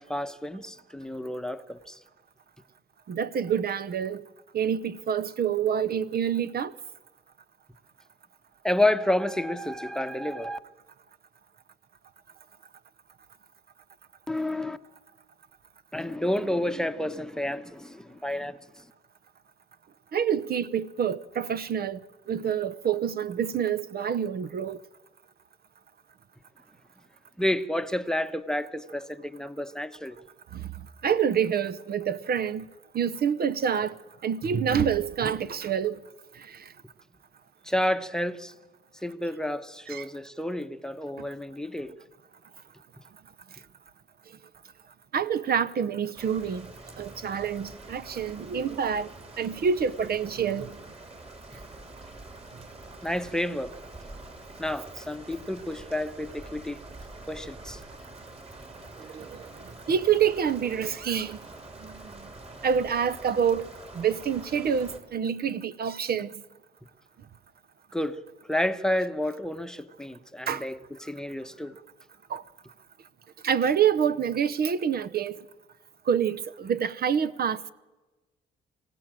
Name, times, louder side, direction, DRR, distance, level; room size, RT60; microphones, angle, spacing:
voice 1, 0.0-2.0 8.6-10.6 14.3-14.8 15.9-18.6 27.4-30.2 37.6-38.5 39.0-41.9 53.0-53.7 54.6-56.8 57.3-57.8 67.9-68.2 68.5-71.7, left 1 dB, 5° left, 1.0 m, -30 dB
voice 2, 3.1-4.2 4.5-6.7 20.1-22.0 22.3-24.8 30.5-30.6 31.0-32.7 32.9-34.0 34.2-36.0 36.5-36.6 39.9-40.1 45.1-46.7 47.0-49.1 49.4-50.7 59.1-59.4 59.9-61.4 61.8-62.0 62.6-63.7 63.9-66.3 70.5-70.6 72.3-72.4 73.4-75.4 76.1-77.7, right 7 dB, 50° right, 0.7 m, -27 dB
sound 1, 46.1-65.0, right 2 dB, 30° right, 4.0 m, -46 dB
25.0 x 16.5 x 7.5 m
cardioid pair, 90°, 20 cm